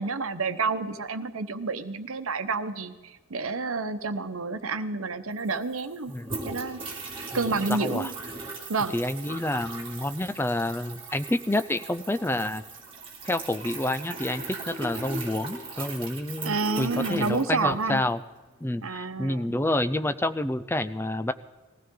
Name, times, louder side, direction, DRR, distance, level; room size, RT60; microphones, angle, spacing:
voice 1, 0.0-6.1 6.4-6.8 7.3-8.1 8.7-8.9 16.4-18.0 18.8-19.5, right 4 dB, 80° right, 9 dB, 1.0 m, -29 dB
sound 1, 5.3-18.1, right 3 dB, 25° right, 2.9 m, -39 dB
voice 2, 6.1-6.5 7.3-7.4 7.7-8.1 8.9-12.6 13.2-18.2 18.6-21.3, left 1 dB, 10° left, 11 dB, 0.5 m, -28 dB
20.5 x 15.5 x 3.8 m, 1.3 s
head